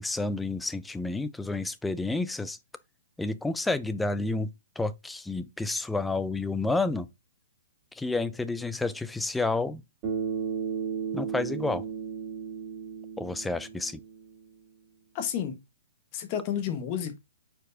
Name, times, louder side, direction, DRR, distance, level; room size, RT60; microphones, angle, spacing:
voice 1, 0.0-2.6 3.2-4.5 4.8-7.1 8.0-9.8 11.1-11.8 13.2-14.0, left 2 dB, 5° left, 0.3 m, -30 dB
Bass guitar, 10.0-14.4, right 7 dB, 30° right, 2.1 m, -34 dB
voice 2, 15.1-15.6 16.1-17.2, left 9 dB, 35° left, 1.1 m, -31 dB
4.6 x 4.6 x 2.5 m
hypercardioid pair, 140°, 0 cm